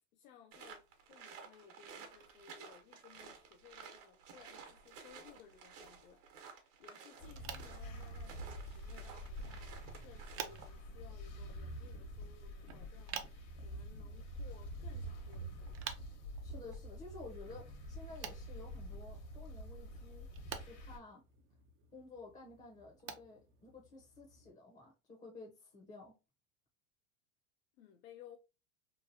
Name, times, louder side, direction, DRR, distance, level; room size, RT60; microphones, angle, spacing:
voice 1, 0.1-15.8 27.8-28.4, left 8 dB, 85° left, 0.6 m, -60 dB
sound 1, 0.5-10.8, right 6 dB, 70° right, 1.0 m, -54 dB
sound 2, 7.2-21.0, equal, 60° left, 1.2 m, -47 dB
sound 3, 7.2-24.5, right 8 dB, 35° right, 0.4 m, -52 dB
voice 2, 16.4-21.2 21.9-26.2, left 3 dB, 20° left, 0.6 m, -53 dB
3.0 x 2.3 x 2.6 m
supercardioid pair, 115°, 41 cm